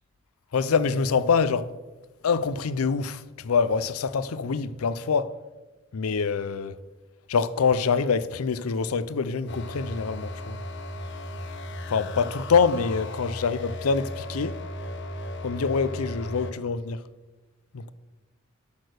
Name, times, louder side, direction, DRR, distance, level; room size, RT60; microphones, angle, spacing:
voice 1, 0.5-1.7 2.2-5.4 5.9-6.8 7.3-10.6 11.9-14.6 15.4-17.0 17.7-17.9, left 5 dB, 85° left, 0.5 m, -25 dB
sound 1, 9.5-16.5, left 1 dB, 55° left, 0.8 m, -36 dB
8.4 x 6.6 x 6.5 m
head